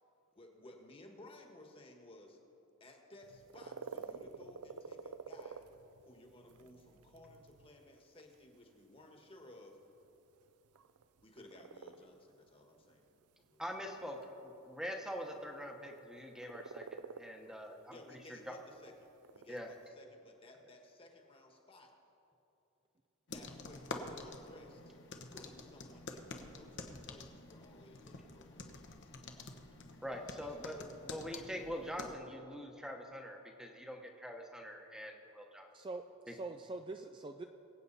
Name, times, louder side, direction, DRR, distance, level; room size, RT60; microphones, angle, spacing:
voice 1, 0.3-2.4 2.8-5.7 6.0-9.8 11.2-13.1 13.4-13.6 17.9-19.0 19.3-21.9 23.3-24.9 25.3-29.4 30.4-30.5, left 1 dB, 25° left, 2 dB, 1.4 m, -57 dB
sound 1, 3.2-19.9, right 5 dB, 80° right, 0.5 m, -52 dB
voice 2, 13.6-18.5 19.5-19.7 30.0-35.7 36.3-36.4, equal, 5° right, 2 dB, 1.0 m, -44 dB
sound 2, 23.3-32.1, left 3 dB, 55° left, 1.0 m, -48 dB
voice 3, 35.7-37.4, right 3 dB, 20° right, 6 dB, 0.3 m, -44 dB
22.5 x 8.4 x 4.1 m, 3.0 s
head